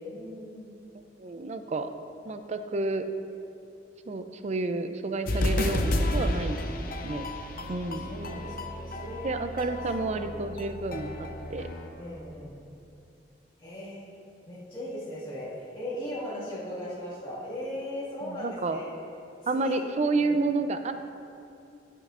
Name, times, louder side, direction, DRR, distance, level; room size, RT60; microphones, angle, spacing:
voice 1, 0.0-0.8 7.6-9.2 10.0-10.4 12.0-12.6 13.6-14.1 14.5-18.9 19.5-19.9 20.1-20.4, equal, 30° left, -10 dB, 1.9 m, -38 dB
voice 2, 1.2-1.9 2.3-3.0 4.1-6.6 7.0-7.3 7.7-8.1 9.2-11.7 18.2-18.8 19.5-20.9, right 3 dB, 40° right, 9 dB, 0.4 m, -30 dB
sound 1, 5.3-11.9, left 1 dB, 55° left, 0.6 m, -31 dB
14.0 x 6.5 x 2.5 m, 2.5 s
head